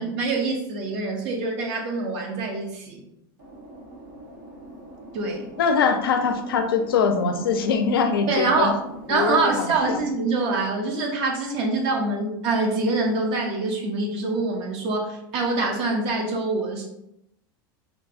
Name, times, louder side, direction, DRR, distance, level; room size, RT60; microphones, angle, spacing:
voice 1, 0.0-3.0 5.1-5.5 8.3-8.8 9.1-16.9, right 3 dB, 55° right, 1 dB, 0.5 m, -25 dB
sound 1, 3.4-10.0, equal, 75° right, 1.2 m, -42 dB
voice 2, 5.6-8.7 9.1-10.0, left 5 dB, 90° left, 6 dB, 0.4 m, -23 dB
2.6 x 2.2 x 2.5 m, 0.80 s
hypercardioid pair, 95°, 12 cm